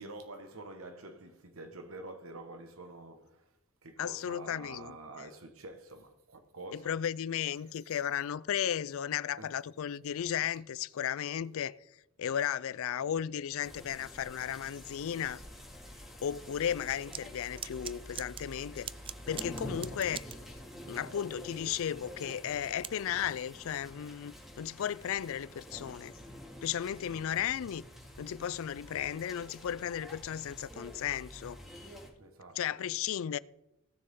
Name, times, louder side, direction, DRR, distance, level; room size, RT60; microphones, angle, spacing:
voice 1, 0.0-3.5 3.8-7.0 9.4-9.5 27.1-27.3 32.2-32.6 32.9-33.0, right 2 dB, 70° right, 1.5 m, -47 dB
voice 2, 4.0-4.9 6.7-11.8 12.2-15.4 16.2-18.9 19.3-20.4 20.9-26.1 26.6-27.9 28.2-31.6 32.6-33.4, left 9 dB, 70° left, 0.4 m, -35 dB
sound 1, 13.6-32.1, equal, ahead, 3.4 m, -48 dB
sound 2, 17.1-17.2 17.6-18.4 18.9-20.4 22.8-22.9, right 9 dB, 25° right, 0.3 m, -40 dB
18.0 x 6.7 x 3.7 m
head